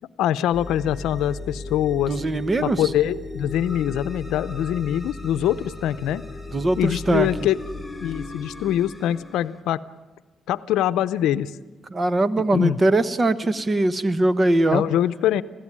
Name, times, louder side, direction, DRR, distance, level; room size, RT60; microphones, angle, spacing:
voice 1, 0.2-2.1 2.6-6.2 6.8-7.6 8.0-9.8 10.5-11.5 12.4-12.8 14.7-15.4, left 11 dB, 85° left, 14 dB, 0.6 m, -23 dB
sound 1, 0.5-9.6, left 2 dB, 5° left, 1.5 m, -36 dB
voice 2, 2.1-2.8 6.5-7.3 11.9-14.8, right 2 dB, 30° right, 14 dB, 1.1 m, -21 dB
21.0 x 16.0 x 9.9 m, 1.2 s
cardioid pair, 90°, 0 cm